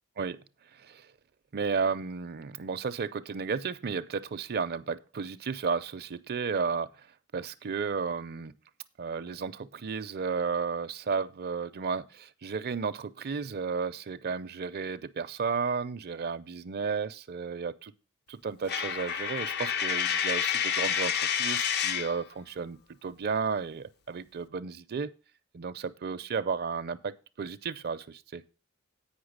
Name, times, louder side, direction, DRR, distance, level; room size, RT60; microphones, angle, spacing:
voice 1, 0.7-1.1 1.5-7.1 7.3-8.5 9.0-17.9 18.3-25.1 25.5-28.4, right 5 dB, 45° right, 0.5 m, -33 dB
Coin (dropping), 18.7-22.2, left 8 dB, 50° left, 0.5 m, -29 dB
8.8 x 5.4 x 6.4 m
head